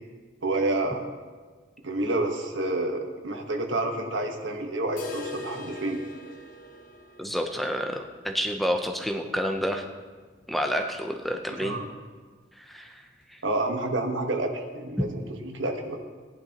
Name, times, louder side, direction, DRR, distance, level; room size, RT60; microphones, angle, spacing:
voice 1, 0.4-1.0 1.8-6.0 11.6-11.8 13.4-16.0, right 2 dB, 90° right, 3 dB, 1.3 m, -29 dB
sound 1, 5.0-10.8 11.1-11.2 11.5-11.6 12.1-12.2 13.1-13.2, left 1 dB, 45° left, 1.0 m, -43 dB
voice 2, 7.2-9.9 10.5-11.8 12.7-13.0 13.3-13.4 15.0-15.1, equal, ahead, 3 dB, 0.6 m, -29 dB
17.0 x 11.0 x 2.9 m, 1.4 s
head